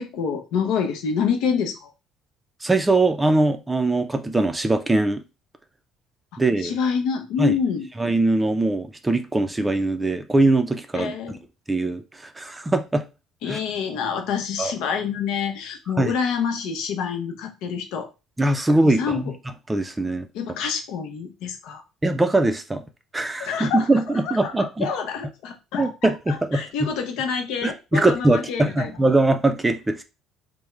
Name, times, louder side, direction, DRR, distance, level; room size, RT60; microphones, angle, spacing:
voice 1, 0.0-1.9 6.3-7.9 10.9-11.4 13.4-18.1 18.8-19.3 20.3-21.8 23.4-24.0 24.2-29.1, left 6 dB, 80° left, 0.7 m, -27 dB
voice 2, 2.6-5.2 6.4-6.8 7.4-7.5 8.0-11.1 11.7-13.0 13.5-13.6 14.6-14.7 16.0-16.1 18.4-19.3 19.7-20.3 22.0-22.8 23.1-24.9 25.8-26.9 27.6-30.0, right 2 dB, 15° right, 0.4 m, -21 dB
3.4 x 2.0 x 3.2 m
cardioid pair, 110°, 0 cm